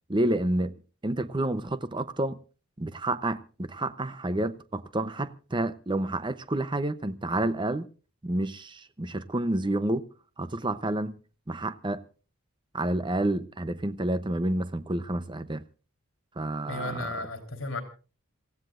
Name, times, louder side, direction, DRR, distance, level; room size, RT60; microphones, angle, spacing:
voice 1, 0.1-0.7 1.0-2.4 2.8-7.9 8.2-10.0 10.4-11.2 11.5-12.0 12.7-15.6 16.4-17.1, right 1 dB, 20° right, 0.7 m, -29 dB
voice 2, 16.7-17.8, left 2 dB, 60° left, 3.7 m, -34 dB
27.0 x 15.5 x 2.5 m
head